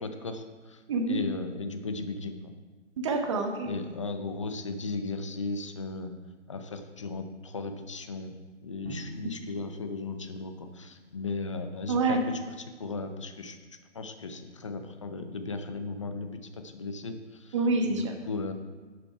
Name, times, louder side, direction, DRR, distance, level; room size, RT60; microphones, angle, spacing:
voice 1, 0.0-0.8 1.1-2.4 3.6-6.1 6.5-8.3 8.6-13.6 13.9-17.5 17.9-18.5, left 3 dB, 25° left, 8 dB, 0.6 m, -36 dB
voice 2, 0.9-1.2 3.0-3.7 11.9-12.2 17.5-18.1, right 3 dB, 25° right, 4 dB, 1.1 m, -27 dB
Drum, 8.8-10.9, right 3 dB, 75° right, 2.4 m, -46 dB
11.5 x 7.1 x 4.6 m, 1.4 s
hypercardioid pair, 160°, 37 cm